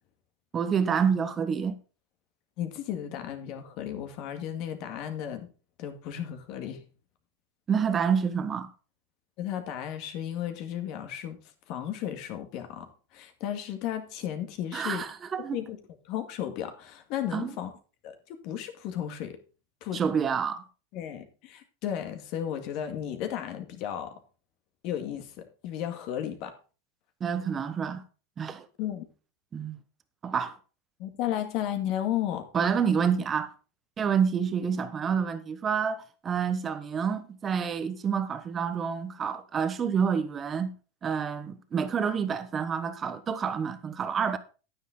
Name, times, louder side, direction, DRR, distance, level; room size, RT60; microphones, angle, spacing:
voice 1, 0.5-1.8 7.7-8.7 14.7-15.6 17.3-17.6 19.9-20.6 27.2-28.0 28.4-28.7 29.5-29.8 30.2-30.6 32.5-33.5 34.0-40.7 41.0-44.4, right 6 dB, 25° right, 1.0 m, -28 dB
voice 2, 2.6-5.5 5.8-6.8 9.4-11.4 11.7-15.0 15.5-15.8 16.1-17.7 18.0-19.4 19.8-20.0 20.9-24.2 24.8-26.5 28.8-29.0 31.0-32.5, left 10 dB, 50° left, 2.1 m, -34 dB
10.0 x 9.4 x 3.8 m
supercardioid pair, 130°, 0 cm